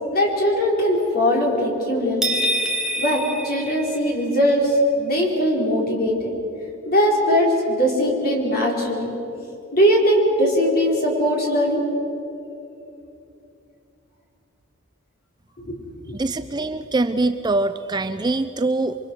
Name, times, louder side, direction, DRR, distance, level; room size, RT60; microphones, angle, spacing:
voice 1, 0.1-2.3 3.0-6.3 6.9-9.2 9.7-11.8 15.6-15.8 16.0-16.2, equal, 45° left, -2 dB, 4.9 m, -20 dB
sound 1, 2.2-4.4, equal, 5° right, 1.6 m, -26 dB
voice 2, 16.1-19.0, right 2 dB, 20° right, 10 dB, 0.5 m, -23 dB
28.5 x 23.5 x 6.4 m, 2.9 s
head